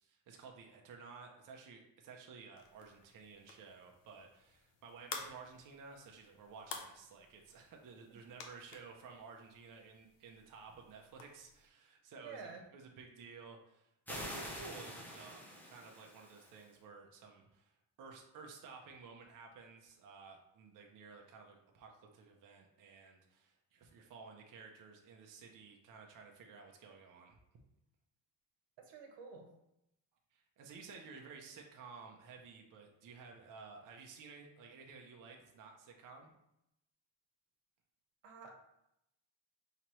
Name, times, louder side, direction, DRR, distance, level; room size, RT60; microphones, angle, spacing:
voice 1, 0.0-12.5 12.7-27.4 30.3-36.3, right 5 dB, 45° right, 2 dB, 0.6 m, -54 dB
sound 1, 2.6-11.7, left 5 dB, 90° left, 0.8 m, -53 dB
voice 2, 12.2-12.6 28.8-29.5 38.2-38.6, right 5 dB, 85° right, 2 dB, 1.0 m, -49 dB
sound 2, 14.1-16.6, equal, 5° left, 0.5 m, -47 dB
5.7 x 2.9 x 3.0 m, 0.83 s
cardioid pair, 180°, 43 cm